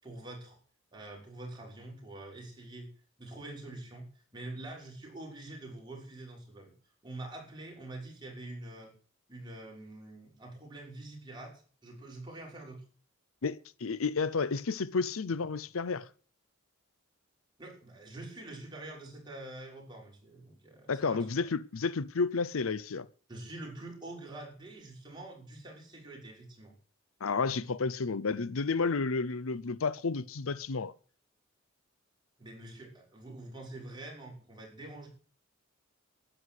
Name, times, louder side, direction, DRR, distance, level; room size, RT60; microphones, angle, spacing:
voice 1, 0.0-0.6 0.9-2.9 3.2-6.7 7.0-8.9 9.3-12.8 17.6-21.5 23.3-26.7 32.4-35.1, right 2 dB, 20° right, 6.1 m, -45 dB
voice 2, 13.4-16.1 20.9-23.1 27.2-30.9, left 4 dB, 80° left, 0.6 m, -31 dB
12.5 x 10.0 x 8.2 m
head